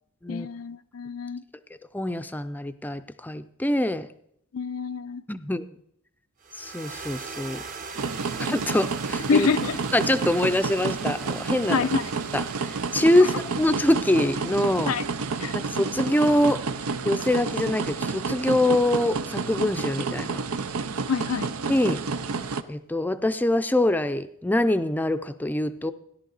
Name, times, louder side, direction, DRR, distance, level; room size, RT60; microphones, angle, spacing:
voice 1, 0.3-1.4 4.5-5.2 9.3-9.8 11.7-12.1 13.2-13.3 14.9-15.1 15.4-15.6 21.1-21.5, left 5 dB, 80° left, 11 dB, 0.5 m, -26 dB
voice 2, 1.9-4.1 5.3-5.6 6.6-7.6 8.4-9.5 9.9-11.9 12.3-14.9 15.5-16.7 17.0-20.4 21.7-22.0 22.7-25.9, left 1 dB, 10° left, 11 dB, 0.5 m, -24 dB
sound 1, 6.4-20.8, right 4 dB, 40° right, 0.9 m, -43 dB
sound 2, 7.9-22.6, right 4 dB, 90° right, 0.7 m, -30 dB
16.5 x 11.0 x 4.0 m, 0.73 s
head